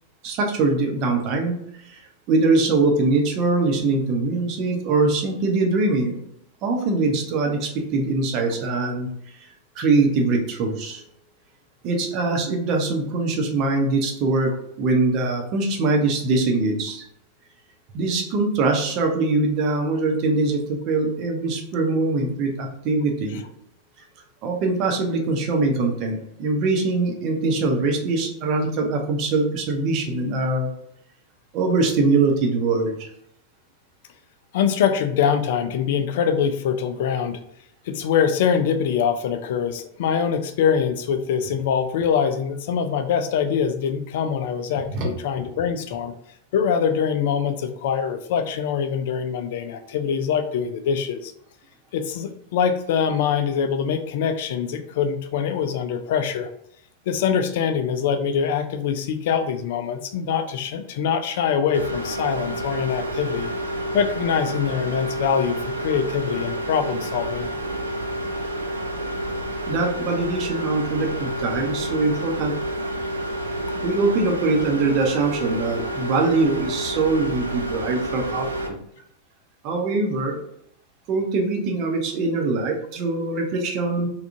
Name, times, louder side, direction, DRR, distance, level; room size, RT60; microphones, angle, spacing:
voice 1, 0.2-1.6 1.9-2.0 2.3-6.2 6.6-9.1 9.8-11.0 11.8-14.5 14.8-17.0 17.9-23.4 24.4-30.7 31.5-32.9 44.9-45.1 69.7-72.5 73.8-78.8 79.6-80.4 81.1-84.1, right 3 dB, 40° right, 2 dB, 0.7 m, -22 dB
voice 2, 34.5-37.4 37.9-46.1 46.5-51.3 51.9-56.5 57.1-63.5 63.9-67.5, left 7 dB, 55° left, 9 dB, 0.3 m, -24 dB
sound 1, 61.7-78.7, right 1 dB, 75° right, 0.4 m, -29 dB
3.5 x 2.3 x 2.5 m, 0.74 s
figure-of-eight pair, 90°, 0 cm